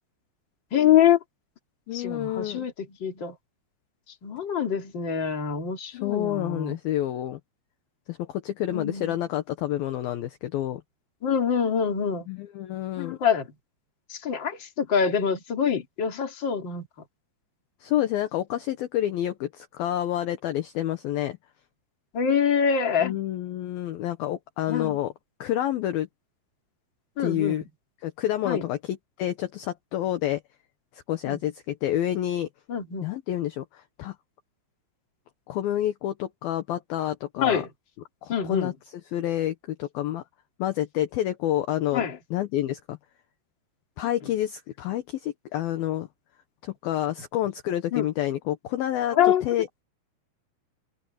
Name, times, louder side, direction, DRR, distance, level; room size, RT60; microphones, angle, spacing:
voice 1, 0.7-1.2 1.9-2.7 3.0-3.3 4.2-6.8 8.7-9.1 11.2-12.3 13.0-13.5 14.1-16.9 22.1-23.2 24.7-25.0 27.2-27.6 28.4-28.6 31.3-31.4 32.7-33.1 37.4-37.7 38.3-38.7 41.9-42.2 47.9-48.1 49.1-49.4, left 8 dB, 30° left, 2.6 m, -25 dB
voice 2, 1.9-2.7 5.9-7.4 8.1-10.8 12.3-13.2 17.8-21.4 23.0-25.1 25.4-26.1 27.2-27.6 28.0-30.4 30.9-32.5 33.0-34.2 35.5-37.6 38.2-38.7 39.1-40.2 40.6-43.0 44.0-46.1 46.6-49.8, left 12 dB, 70° left, 2.5 m, -28 dB
omnidirectional pair, 5.3 m